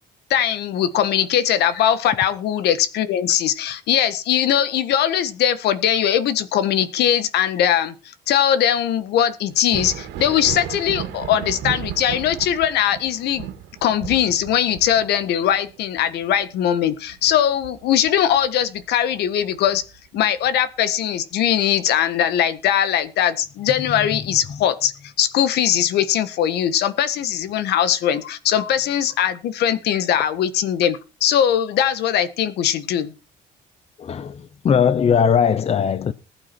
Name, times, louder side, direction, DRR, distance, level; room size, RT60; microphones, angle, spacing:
voice 1, 0.3-7.9 8.3-13.5 13.8-19.8 20.1-24.9 25.2-33.1, left 10 dB, 75° left, 1.6 m, -20 dB
Thunder, 9.6-18.9 19.3-20.5 22.1-22.2 22.9-23.1, right 10 dB, 85° right, 2.3 m, -35 dB
voice 2, 34.0-36.1, left 7 dB, 40° left, 0.8 m, -19 dB
19.5 x 8.8 x 4.6 m
cardioid pair, 110°, 17 cm